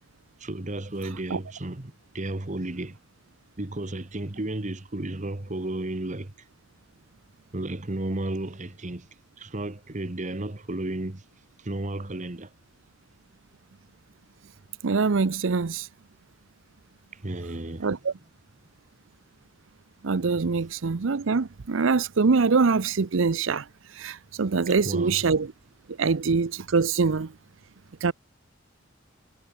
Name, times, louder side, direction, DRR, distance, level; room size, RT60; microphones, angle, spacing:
voice 1, 0.4-3.0 3.6-6.3 7.5-9.1 9.4-11.2 11.6-12.5 17.1-17.9 24.7-25.2, right 1 dB, 40° right, 1.4 m, -33 dB
voice 2, 14.8-15.9 17.8-18.1 20.0-25.5 26.0-27.3 28.0-28.1, right 4 dB, 75° right, 0.7 m, -24 dB
head